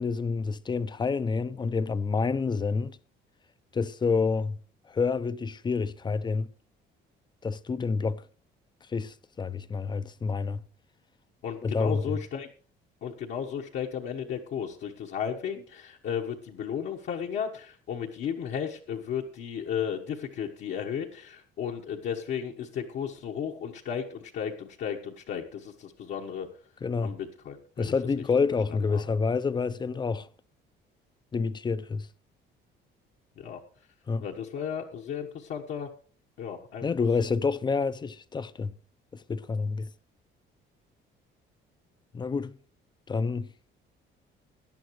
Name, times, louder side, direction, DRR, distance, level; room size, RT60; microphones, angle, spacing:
voice 1, 0.0-3.0 3.7-4.6 4.9-6.5 7.4-8.2 8.9-10.6 11.6-12.2 26.8-27.1 27.8-30.3 31.3-32.1 34.1-34.3 36.8-38.7 39.1-39.9 42.1-42.6 43.1-43.5, left 4 dB, 20° left, 0.6 m, -28 dB
voice 2, 11.4-12.5 13.0-26.5 27.0-27.9 28.9-29.0 33.4-33.6 34.2-35.9 36.4-36.9, left 8 dB, 65° left, 1.3 m, -34 dB
18.0 x 11.0 x 3.1 m
cardioid pair, 125°, 20 cm